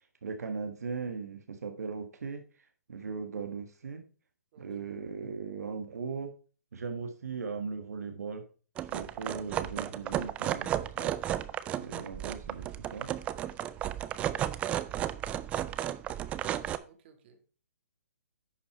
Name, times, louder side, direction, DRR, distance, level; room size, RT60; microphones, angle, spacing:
voice 1, 0.2-2.4 2.9-4.0 4.6-6.3 6.7-8.4 8.9-11.2 11.7-13.1, right 5 dB, 80° right, 6 dB, 1.4 m, -38 dB
sound 1, 8.8-16.8, right 11 dB, 15° right, 0.4 m, -33 dB
voice 2, 16.8-17.6, right 6 dB, 40° right, 6 dB, 1.9 m, -59 dB
10.5 x 4.4 x 4.4 m, 0.37 s
hypercardioid pair, 150°, 8 cm